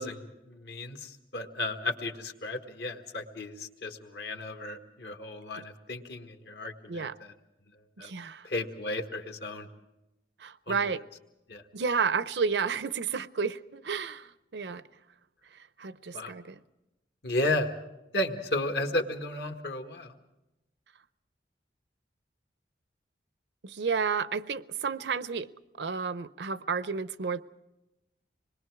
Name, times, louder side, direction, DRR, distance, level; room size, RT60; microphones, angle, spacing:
voice 1, 0.0-7.3 8.0-8.1 8.4-9.7 10.7-10.8 11.5-11.6 16.1-16.3 17.2-17.8 18.1-20.1, left 1 dB, 70° left, 1.6 m, -34 dB
voice 2, 8.0-8.5 10.4-11.0 11.7-14.8 15.8-16.6 23.6-25.5 25.8-27.4, right 5 dB, 80° right, 0.6 m, -31 dB
26.5 x 21.0 x 4.7 m
head